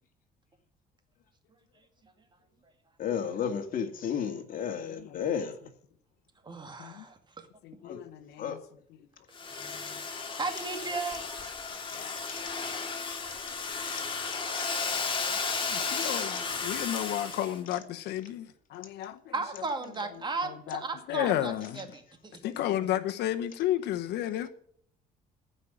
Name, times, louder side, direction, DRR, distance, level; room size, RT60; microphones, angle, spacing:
voice 1, 3.0-5.6 7.8-8.0 8.4-8.6 11.7-12.4 13.3-14.0 14.5-15.3 15.6-15.7 16.1-16.4 16.8-16.9, left 7 dB, 55° left, 2.2 m, -35 dB
voice 2, 6.4-7.5 10.4-11.2 19.3-22.4, right 3 dB, 25° right, 2.2 m, -35 dB
voice 3, 7.6-8.6 11.9-12.3 15.7-19.2 20.4-20.8 21.1-21.8 22.4-24.5, left 12 dB, 80° left, 1.0 m, -32 dB
Domestic sounds home sounds, 9.3-17.6, left 4 dB, 30° left, 2.6 m, -34 dB
15.0 x 5.6 x 8.7 m
cardioid pair, 110°, 17 cm